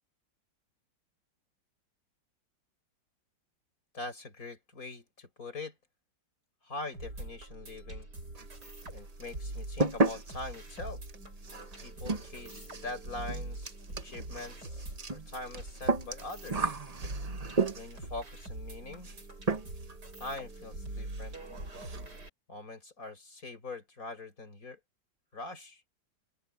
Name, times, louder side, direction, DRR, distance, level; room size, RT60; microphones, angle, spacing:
voice 1, 3.9-5.8 6.6-8.1 8.9-11.0 11.8-16.8 17.5-19.1 20.2-21.4 22.5-24.8 25.3-25.8, left 2 dB, 45° left, 5.9 m, -43 dB
sound 1, 6.9-22.3, right 2 dB, 60° right, 7.9 m, -43 dB
sound 2, 8.3-8.9 9.2-18.1 19.0-19.2 19.5-20.0 20.2-20.3 20.7-20.8 21.1-21.3 21.6-22.0, right 3 dB, 25° right, 1.0 m, -34 dB
open air
omnidirectional pair, 2.0 m